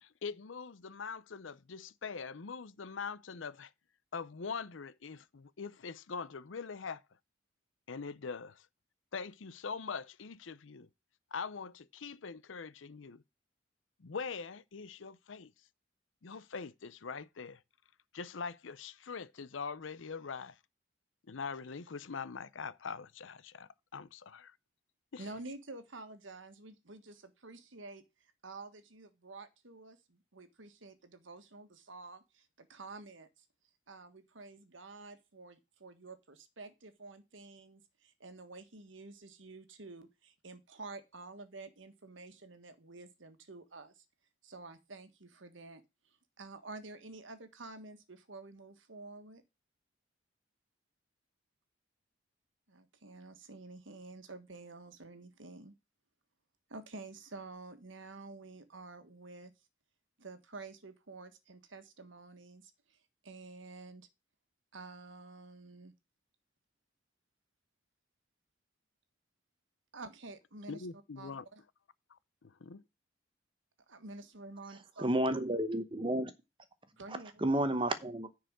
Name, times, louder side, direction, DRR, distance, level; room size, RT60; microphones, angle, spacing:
voice 1, 0.0-3.7 4.1-7.0 7.9-8.6 9.1-10.9 11.3-13.2 14.0-15.5 16.2-17.6 18.1-20.6 21.3-24.5 25.1-25.2 70.7-71.5 72.1-72.8, left 5 dB, 90° left, 0.7 m, -43 dB
voice 2, 25.2-28.0 28.4-33.3 33.9-44.0 44.4-45.8 46.4-49.4 52.7-55.7 56.7-59.5 60.2-63.0 63.2-64.1 64.7-65.9 69.9-70.9 71.2-71.6 73.9-75.0 77.0-77.4, right 3 dB, 85° right, 1.5 m, -49 dB
voice 3, 75.0-76.3 77.4-78.3, right 1 dB, 25° right, 0.9 m, -31 dB
10.0 x 4.7 x 6.1 m
head